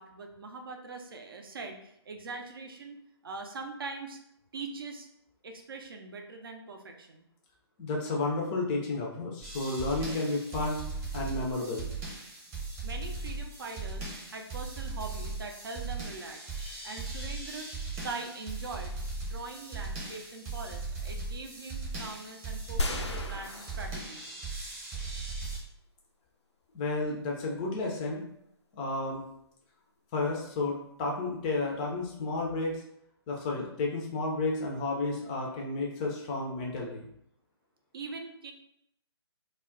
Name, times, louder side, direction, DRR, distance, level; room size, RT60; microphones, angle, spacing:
voice 1, 0.0-4.2 4.5-5.1 5.4-7.2 12.8-16.5 16.8-24.4 37.9-38.5, right 3 dB, 55° right, 4 dB, 0.5 m, -42 dB
voice 2, 7.8-10.8 11.1-11.9 26.7-28.2 28.7-29.2 30.1-32.8 33.3-37.1, left 2 dB, 20° left, -1 dB, 0.4 m, -32 dB
sound 1, 9.4-25.6, right 3 dB, 20° right, 0.8 m, -38 dB
sound 2, 22.8-24.5 25.1-25.2, left 2 dB, 85° left, 0.4 m, -34 dB
2.2 x 2.1 x 3.6 m, 0.75 s
figure-of-eight pair, 135°, 14 cm